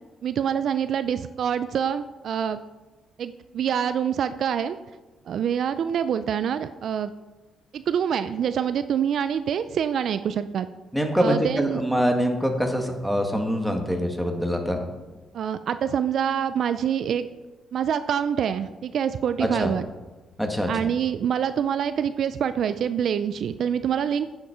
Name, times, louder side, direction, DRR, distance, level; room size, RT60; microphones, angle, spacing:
voice 1, 0.2-2.6 3.2-4.8 5.3-7.1 7.7-10.7 11.2-11.8 15.3-17.3 17.7-19.9 20.7-24.3, right 8 dB, 65° right, 12 dB, 0.4 m, -26 dB
voice 2, 10.9-14.8 19.4-19.7 20.4-20.7, equal, ahead, 3 dB, 1.7 m, -24 dB
9.9 x 7.2 x 5.0 m, 1.2 s
cardioid pair, 90°, 0 cm